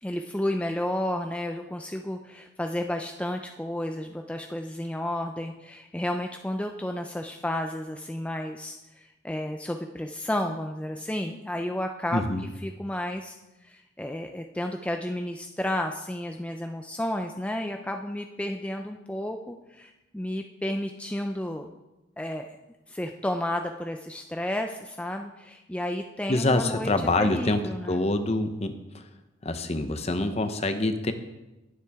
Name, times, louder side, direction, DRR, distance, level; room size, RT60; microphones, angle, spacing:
voice 1, 0.0-12.2 12.6-13.4 13.6-21.7 22.2-22.5 22.9-28.0, left 1 dB, 5° left, 4 dB, 0.4 m, -32 dB
voice 2, 12.1-12.4 26.3-27.6 27.9-28.8 29.4-31.1, left 2 dB, 35° left, 8 dB, 0.8 m, -25 dB
19.0 x 7.5 x 3.5 m, 1.0 s
head